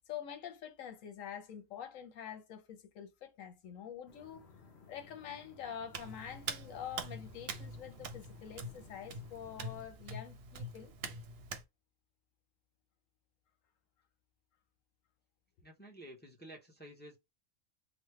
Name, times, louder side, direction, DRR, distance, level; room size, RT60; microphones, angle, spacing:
voice 1, 0.1-4.5 4.9-10.9, left 9 dB, 80° left, 1.1 m, -46 dB
sound 1, 4.1-9.8, left 4 dB, 55° left, 1.0 m, -59 dB
Hands, 5.9-11.6, right 3 dB, 60° right, 0.7 m, -44 dB
voice 2, 15.6-17.2, right 1 dB, 15° left, 0.4 m, -52 dB
3.2 x 2.1 x 3.1 m
omnidirectional pair, 1.4 m